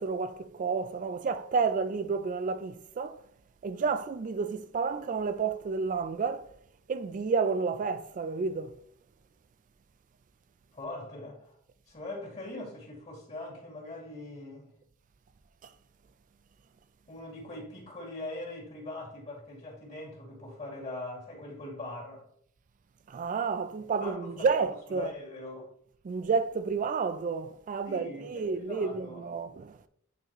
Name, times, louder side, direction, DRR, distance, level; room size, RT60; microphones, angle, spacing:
voice 1, 0.0-3.2 3.6-6.5 6.9-8.7 23.1-25.1 26.1-29.8, right 5 dB, 40° right, 0.3 m, -30 dB
voice 2, 10.7-11.5 11.9-14.7 17.1-22.3 24.0-25.7 27.9-29.3, left 2 dB, 35° left, 2.3 m, -41 dB
8.9 x 4.1 x 3.0 m
head